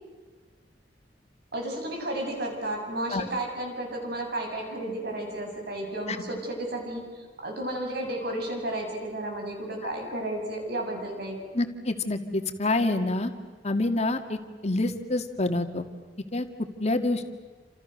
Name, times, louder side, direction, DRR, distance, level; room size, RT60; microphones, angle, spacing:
voice 1, 1.5-11.4, right 1 dB, 65° right, 2 dB, 7.6 m, -33 dB
voice 2, 11.5-13.3 13.6-14.4 14.6-15.9 16.3-16.5 16.8-17.2, left 2 dB, 40° left, 6 dB, 2.2 m, -27 dB
29.5 x 28.0 x 6.6 m, 1.4 s
head